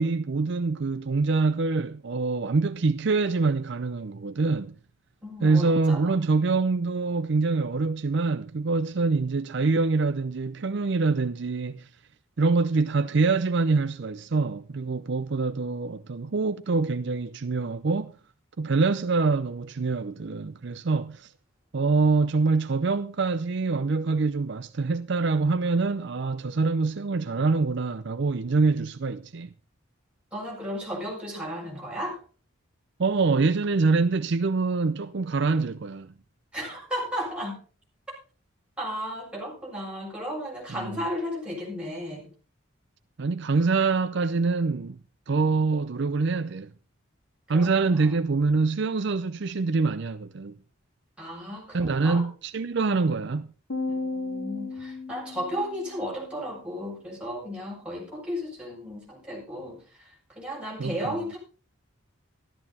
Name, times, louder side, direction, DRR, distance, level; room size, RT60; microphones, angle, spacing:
voice 1, 0.0-4.8 5.4-11.9 12.4-18.1 18.6-21.3 21.7-29.5 33.0-36.1 40.7-41.0 43.2-45.0 45.3-46.7 47.5-50.6 51.7-53.5 60.8-61.2, right 4 dB, 60° right, 0.5 m, -25 dB
voice 2, 5.2-6.2 30.3-32.2 36.5-37.6 38.8-42.3 47.5-48.1 51.2-52.2 52.9-53.0 53.9-61.4, equal, 5° right, 7.4 m, -34 dB
sound 1, 53.7-56.1, left 3 dB, 85° left, 2.7 m, -34 dB
13.0 x 13.0 x 4.2 m
head